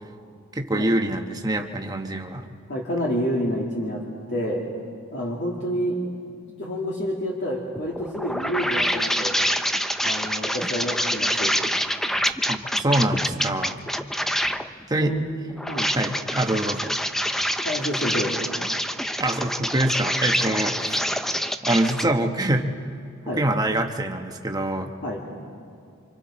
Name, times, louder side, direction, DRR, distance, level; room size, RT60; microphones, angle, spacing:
voice 1, 0.5-2.5 12.5-13.8 14.9-15.2 15.9-16.9 19.2-21.1 21.6-22.6 23.4-24.9, right 1 dB, 20° right, 4 dB, 1.1 m, -25 dB
voice 2, 2.7-4.0 4.3-4.6 5.1-6.1 6.6-9.4 10.0-11.5 15.0-15.2 15.7-15.9 17.6-18.3 20.5-20.6 23.2-23.4 25.0-25.2, equal, 55° left, -4 dB, 2.5 m, -28 dB
sound 1, 7.7-14.7 15.5-22.0, equal, ahead, 0.5 m, -26 dB
28.5 x 26.0 x 4.3 m, 2.3 s
head